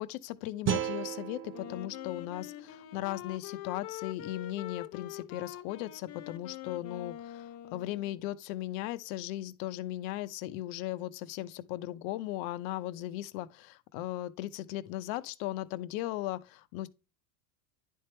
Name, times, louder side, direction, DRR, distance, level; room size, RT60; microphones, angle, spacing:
voice 1, 0.0-16.9, left 15 dB, 60° left, 0.9 m, -37 dB
sound 1, 0.7-3.8, right 10 dB, 25° right, 0.6 m, -37 dB
Wind instrument woodwind instrument, 1.5-8.2, left 12 dB, 35° left, 0.6 m, -44 dB
10.0 x 3.6 x 4.4 m
supercardioid pair, 130°, 45 cm